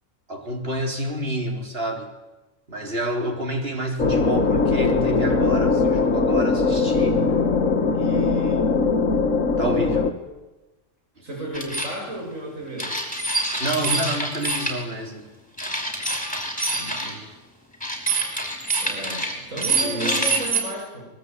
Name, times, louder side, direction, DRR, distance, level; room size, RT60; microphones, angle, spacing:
voice 1, 0.3-2.1 2.7-7.4 7.9-8.7 9.6-10.1 11.2-11.3 13.6-15.3 19.5-20.3, right 1 dB, 50° right, 2 dB, 4.1 m, -29 dB
sound 1, 4.0-10.1, left 4 dB, 75° left, 2.0 m, -20 dB
voice 2, 11.2-12.9 16.7-17.2 18.8-21.1, right 1 dB, 85° right, -1 dB, 7.5 m, -33 dB
sound 2, 11.5-11.9 12.8-14.7 15.6-17.1 17.8-20.6, right 2 dB, 5° left, 5.7 m, -25 dB
24.5 x 21.5 x 9.5 m, 1.1 s
omnidirectional pair, 1.3 m